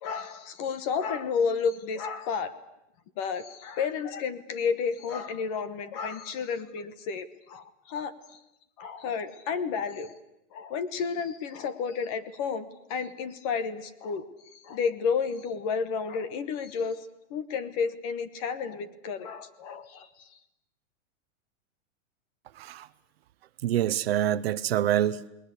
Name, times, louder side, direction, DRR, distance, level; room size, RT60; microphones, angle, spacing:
voice 1, 0.0-2.5 3.2-8.4 8.8-10.1 10.5-14.2 14.5-17.0 17.3-20.1, left 6 dB, 25° left, 13 dB, 1.2 m, -31 dB
voice 2, 22.6-22.9 23.6-25.3, right 11 dB, 50° right, 14 dB, 0.9 m, -26 dB
29.0 x 20.0 x 8.3 m, 0.86 s
supercardioid pair, 175°, 39 cm